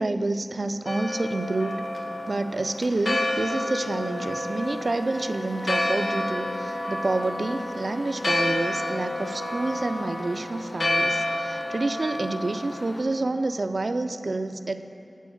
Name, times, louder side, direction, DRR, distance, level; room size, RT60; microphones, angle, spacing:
voice 1, 0.0-1.9 2.3-14.8, right 2 dB, 65° right, 10 dB, 0.3 m, -28 dB
Church bell, 0.9-13.0, left 1 dB, 75° left, 0.7 m, -30 dB
Wind instrument woodwind instrument, 3.4-10.6, left 1 dB, 25° left, 0.7 m, -38 dB
9.1 x 4.3 x 7.0 m, 2.7 s
wide cardioid pair, 50°, 0 cm